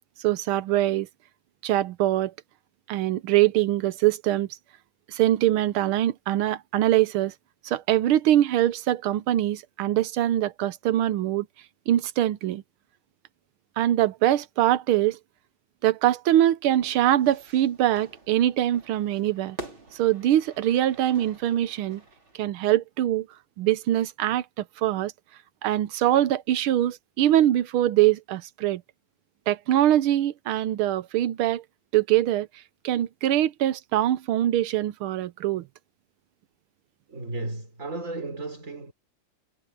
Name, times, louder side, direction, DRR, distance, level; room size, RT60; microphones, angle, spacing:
voice 1, 0.2-1.1 1.6-2.3 2.9-4.5 5.1-7.3 7.6-11.5 11.9-12.6 13.8-15.2 15.8-19.6 19.9-22.0 22.3-23.3 23.6-25.1 25.6-28.8 29.5-31.6 31.9-32.5 32.8-35.7, right 13 dB, 85° right, 1.7 m, -23 dB
Fire / Fireworks, 16.8-22.4, right 2 dB, 70° right, 6.8 m, -46 dB
voice 2, 37.1-38.9, right 2 dB, 35° right, 4.3 m, -34 dB
omnidirectional pair, 2.3 m